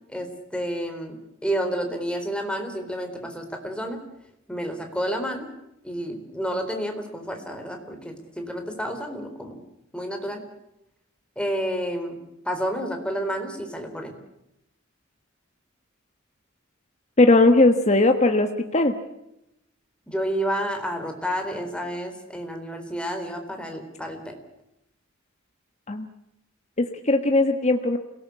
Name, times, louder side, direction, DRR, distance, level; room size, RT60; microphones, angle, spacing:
voice 1, 0.1-1.2 1.4-4.0 4.5-5.5 5.8-9.6 9.9-10.4 11.4-14.2 20.1-24.4, equal, 5° left, 4 dB, 3.9 m, -30 dB
voice 2, 17.2-18.9 25.9-26.1 26.8-28.0, left 2 dB, 35° left, 6 dB, 1.4 m, -19 dB
28.0 x 18.0 x 8.4 m, 0.86 s
head